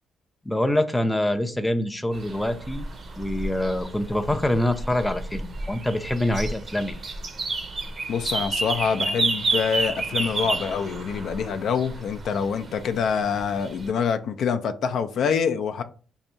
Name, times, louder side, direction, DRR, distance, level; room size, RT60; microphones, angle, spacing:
voice 1, 0.4-2.9 3.2-7.0, left 1 dB, 5° left, 0.5 m, -25 dB
sound 1, 2.1-13.9, right 3 dB, 40° right, 0.6 m, -31 dB
voice 2, 8.1-15.8, left 6 dB, 65° left, 0.4 m, -26 dB
2.7 x 2.6 x 4.3 m
cardioid pair, 90°, 0 cm